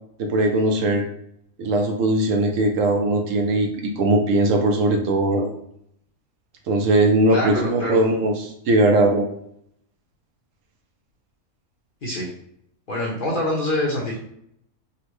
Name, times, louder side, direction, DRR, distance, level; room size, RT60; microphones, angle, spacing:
voice 1, 0.2-1.1 1.6-5.5 6.7-9.2, right 2 dB, 70° right, 3 dB, 0.9 m, -20 dB
voice 2, 7.3-8.0 12.0-12.3 12.9-14.2, left 1 dB, 45° left, -4 dB, 0.8 m, -25 dB
3.8 x 2.1 x 3.0 m, 0.72 s
omnidirectional pair, 1.5 m